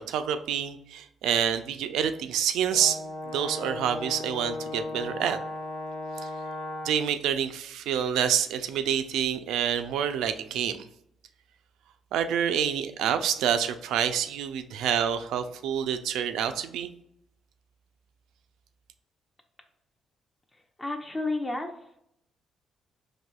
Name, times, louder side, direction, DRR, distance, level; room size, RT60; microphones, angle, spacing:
voice 1, 0.0-3.0 3.2-5.4 6.2-6.3 6.8-10.9 12.1-16.9, right 9 dB, 85° right, 9 dB, 0.3 m, -27 dB
Brass instrument, 2.7-7.1, left 2 dB, 80° left, 0.8 m, -36 dB
voice 2, 20.5-22.0, left 2 dB, 20° left, 3 dB, 0.5 m, -32 dB
4.2 x 2.6 x 2.3 m, 0.75 s
cardioid pair, 90°, 0 cm